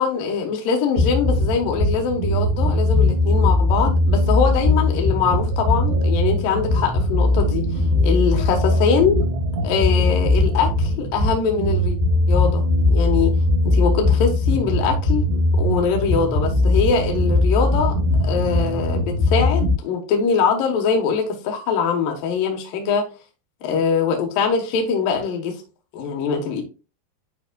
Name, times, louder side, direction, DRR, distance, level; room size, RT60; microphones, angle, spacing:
voice 1, 0.0-7.7 8.0-9.2 9.6-12.0 12.3-13.3 13.6-15.2 15.6-17.9 18.2-23.0 23.6-25.5 25.9-26.6, left 6 dB, 65° left, 2.6 m, -22 dB
sound 1, 1.0-19.7, left 2 dB, 40° right, 2.8 m, -20 dB
sound 2, 4.4-7.6 7.9-10.9, right 5 dB, 75° right, 3.7 m, -41 dB
12.0 x 4.0 x 2.3 m
omnidirectional pair, 5.1 m